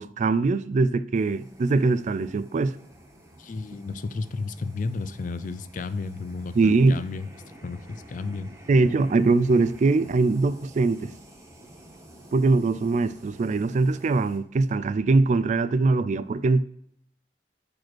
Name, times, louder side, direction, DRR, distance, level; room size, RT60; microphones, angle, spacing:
voice 1, 0.0-2.8 6.6-7.0 8.7-11.1 12.3-16.6, right 3 dB, 45° right, 0.3 m, -22 dB
sound 1, 1.1-14.4, right 1 dB, 15° right, 1.3 m, -50 dB
voice 2, 3.4-7.3 7.6-8.5, left 3 dB, 45° left, 0.4 m, -33 dB
6.0 x 4.9 x 4.4 m
head